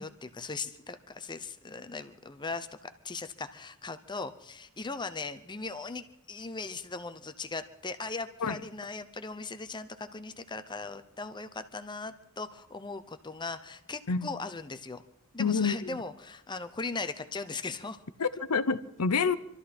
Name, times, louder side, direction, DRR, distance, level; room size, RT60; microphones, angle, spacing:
voice 1, 0.0-15.0 15.3-18.0, left 3 dB, 20° left, 11 dB, 0.7 m, -39 dB
voice 2, 15.4-16.0 18.2-19.4, left 5 dB, 85° left, 13 dB, 0.8 m, -28 dB
25.5 x 13.0 x 4.3 m, 0.83 s
head